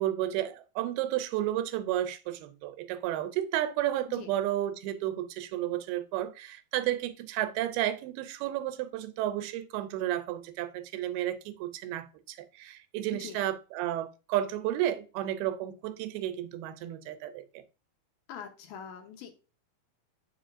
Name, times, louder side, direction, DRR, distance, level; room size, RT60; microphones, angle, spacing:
voice 1, 0.0-17.6, right 13 dB, 85° right, 2.6 m, -32 dB
voice 2, 18.3-19.3, left 8 dB, 75° left, 2.6 m, -43 dB
8.2 x 5.5 x 2.5 m
omnidirectional pair, 4.4 m